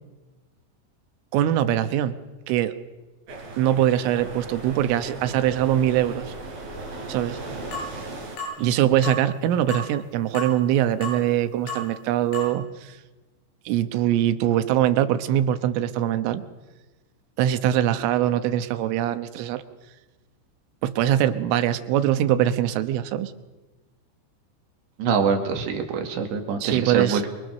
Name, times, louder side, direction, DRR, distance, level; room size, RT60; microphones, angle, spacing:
voice 1, 1.3-2.2 2.5-2.8 3.6-6.3 7.1-7.4 8.6-12.9 13.7-16.4 17.4-19.6 20.8-23.3 26.6-27.2, right 11 dB, 85° right, 10 dB, 3.7 m, -22 dB
sound 1, 3.3-8.4, right 2 dB, 50° right, 6.1 m, -37 dB
sound 2, 7.7-7.9 8.4-8.6 9.0-9.2 9.7-9.9 10.4-10.5 11.0-11.2 11.7-11.9 12.3-12.5, left 1 dB, 80° left, 10.5 m, -32 dB
voice 2, 25.0-27.3, right 6 dB, 70° right, 4 dB, 4.3 m, -25 dB
28.0 x 25.0 x 6.5 m, 1.2 s
omnidirectional pair, 5.6 m